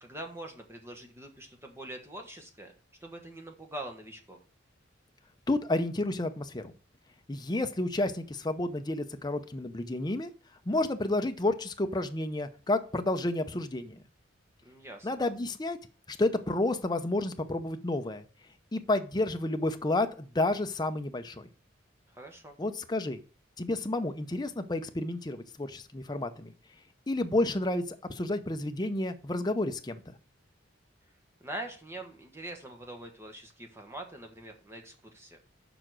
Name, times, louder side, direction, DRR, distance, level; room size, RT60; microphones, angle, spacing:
voice 1, 0.0-2.7 3.0-4.4 14.6-15.1 22.1-22.6 31.4-35.4, right 1 dB, 15° right, 3 dB, 1.2 m, -43 dB
voice 2, 5.5-6.7 7.3-10.3 10.7-14.0 15.0-15.8 16.1-18.2 18.7-21.5 22.6-23.2 23.6-26.5 27.1-30.0, left 2 dB, 20° left, 7 dB, 0.6 m, -30 dB
6.9 x 4.9 x 6.1 m, 0.39 s
head